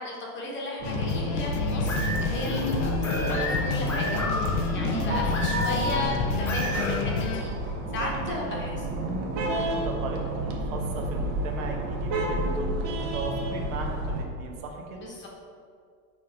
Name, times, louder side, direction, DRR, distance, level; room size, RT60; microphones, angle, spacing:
voice 1, 0.0-8.8 15.0-15.3, left 1 dB, 25° left, -2 dB, 1.1 m, -35 dB
sound 1, 0.8-7.4, left 6 dB, 50° left, 0.7 m, -30 dB
sound 2, 0.8-14.2, right 1 dB, 35° right, 0.9 m, -31 dB
sound 3, 1.7-7.0, equal, 5° left, 0.4 m, -31 dB
voice 2, 4.9-5.4 8.0-8.7 9.5-15.1, right 3 dB, 55° right, 2 dB, 1.2 m, -37 dB
6.6 x 3.9 x 5.5 m, 2.2 s
supercardioid pair, 140°, 49 cm